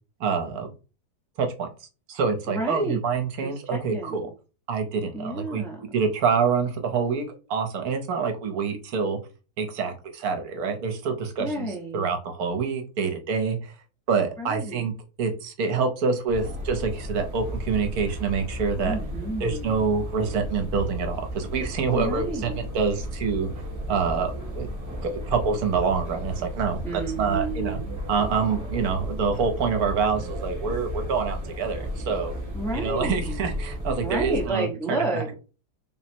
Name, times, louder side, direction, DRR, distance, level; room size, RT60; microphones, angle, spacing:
voice 1, 0.2-0.7 1.4-1.7 2.1-4.3 4.7-5.6 5.9-7.2 7.5-9.2 9.6-11.7 11.9-13.7 14.1-14.9 15.2-19.0 19.4-22.5 22.7-23.5 23.9-24.7 25.0-27.8 28.1-32.3 32.7-35.0, right 5 dB, 70° right, 5 dB, 1.1 m, -26 dB
voice 2, 2.5-3.0 3.4-4.3 5.1-6.0 11.4-12.1 14.4-14.9 18.8-19.8 21.9-22.7 26.8-27.9 32.5-33.5 34.0-35.3, right 2 dB, 5° left, 0 dB, 0.4 m, -31 dB
sound 1, 16.3-34.5, equal, 15° right, 0.7 m, -34 dB
3.7 x 2.0 x 4.3 m, 0.34 s
omnidirectional pair, 1.7 m